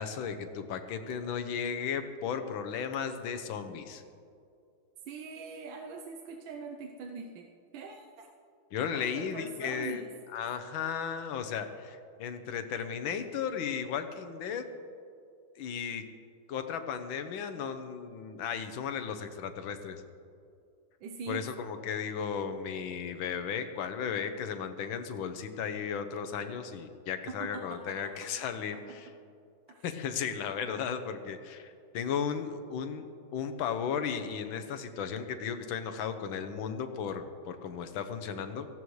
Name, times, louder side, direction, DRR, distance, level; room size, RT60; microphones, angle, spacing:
voice 1, 0.0-4.0 8.7-10.0 10.3-14.7 15.6-16.0 16.5-20.0 21.3-29.1 29.8-38.7, left 7 dB, 75° left, 8 dB, 1.6 m, -35 dB
voice 2, 5.0-8.3 8.9-10.1 21.0-21.4 27.3-28.3 28.7-28.8 29.7-29.8, right 4 dB, 75° right, 2 dB, 1.5 m, -43 dB
18.0 x 15.0 x 3.2 m, 2.5 s
omnidirectional pair, 2.2 m